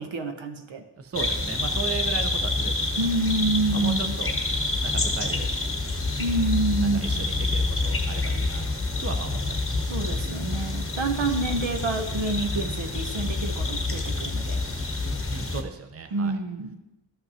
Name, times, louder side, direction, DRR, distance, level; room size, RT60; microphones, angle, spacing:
voice 1, 0.0-0.8 3.0-4.2 6.2-7.2 9.9-14.6 16.1-16.8, right 2 dB, 80° right, 5 dB, 0.9 m, -27 dB
voice 2, 1.0-2.9 3.7-4.3 4.8-5.7 7.0-8.7 9.0-10.3 15.3-16.3, right 5 dB, 30° right, 6 dB, 0.6 m, -36 dB
sound 1, 1.1-15.6, left 3 dB, 30° left, 0.9 m, -27 dB
12.5 x 5.7 x 2.8 m, 0.95 s
wide cardioid pair, 90°, 46 cm